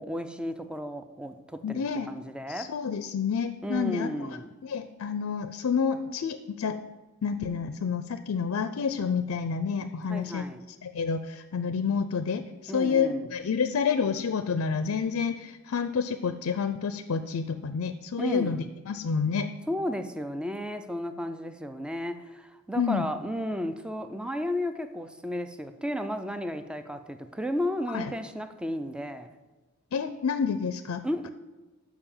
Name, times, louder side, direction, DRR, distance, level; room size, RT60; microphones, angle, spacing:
voice 1, 0.0-2.7 3.6-4.5 10.1-10.6 12.7-13.3 18.2-18.6 19.7-29.3 31.0-31.3, equal, 5° right, 9 dB, 0.4 m, -33 dB
voice 2, 1.6-2.1 2.5-6.8 7.2-10.5 10.8-19.5 22.7-23.1 27.9-28.1 29.9-31.0, left 6 dB, 70° left, 10 dB, 0.4 m, -29 dB
6.8 x 5.8 x 7.1 m, 1.2 s
head